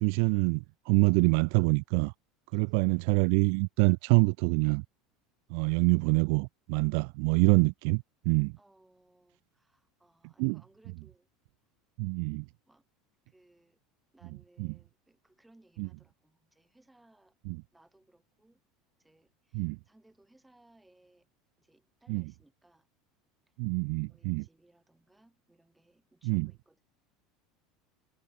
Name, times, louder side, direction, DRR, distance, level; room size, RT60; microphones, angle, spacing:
voice 1, 0.0-2.1 2.5-4.8 5.5-8.5 10.4-10.6 12.0-12.4 14.6-14.7 15.8-15.9 17.5-17.6 19.5-19.8 22.1-22.2 23.6-24.4 26.2-26.5, right 40 dB or more, 55° right, 0.3 m, -26 dB
voice 2, 2.5-3.0 8.6-11.3 12.7-12.9 13.3-13.8 14.1-17.4 17.7-18.6 19.0-21.3 21.6-22.9 24.1-26.8, right 1 dB, 5° right, 7.8 m, -64 dB
cardioid pair, 170°, 0 cm